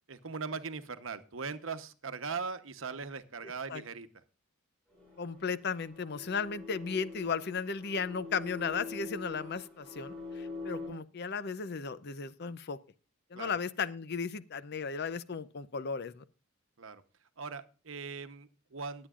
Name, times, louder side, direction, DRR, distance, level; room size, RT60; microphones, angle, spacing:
voice 1, 0.1-4.1 13.3-13.5 16.8-17.0 17.4-19.1, right 5 dB, 65° right, 10 dB, 0.9 m, -40 dB
voice 2, 3.4-3.8 5.2-12.8 13.3-16.2, left 5 dB, 50° left, 15 dB, 0.6 m, -35 dB
sound 1, 4.9-10.9, left 3 dB, 5° left, 6.9 m, -44 dB
21.5 x 8.7 x 2.4 m, 0.37 s
head